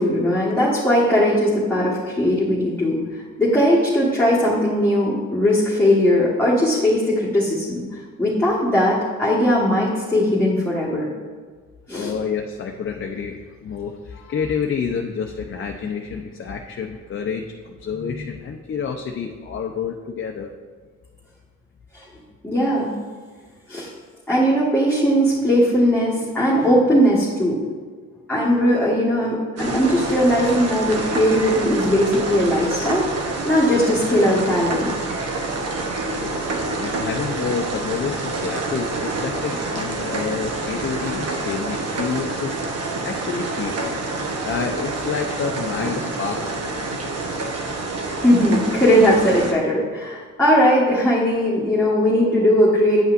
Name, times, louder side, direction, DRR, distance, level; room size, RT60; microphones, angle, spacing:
voice 1, 0.0-7.8 8.2-11.1 11.9-12.1 17.9-18.2 21.9-22.0 22.4-22.9 23.7-23.9 24.3-27.6 28.3-34.9 48.2-53.0, equal, 5° left, -8 dB, 1.4 m, -19 dB
voice 2, 11.9-20.5 36.2-43.9 44.4-47.2, left 6 dB, 45° left, 2 dB, 0.6 m, -29 dB
sound 1, 29.6-49.5, right 2 dB, 55° right, 1.0 m, -27 dB
9.3 x 5.5 x 2.5 m, 1.5 s
cardioid pair, 90°, 30 cm